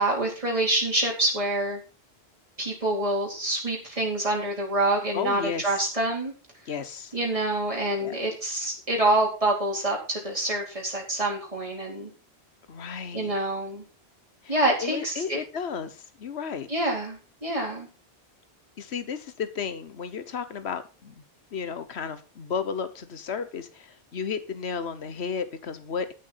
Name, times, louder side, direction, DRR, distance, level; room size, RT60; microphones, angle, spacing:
voice 1, 0.0-1.8 2.6-6.3 7.1-12.1 13.1-13.8 14.5-15.4 16.7-17.9, right 1 dB, 30° right, -2 dB, 4.2 m, -26 dB
voice 2, 5.1-5.8 6.7-7.2 8.0-8.2 12.7-13.4 14.4-16.7 18.8-21.1 21.5-26.1, left 6 dB, 85° left, 12 dB, 1.3 m, -33 dB
13.5 x 7.0 x 5.7 m, 0.34 s
omnidirectional pair, 1.1 m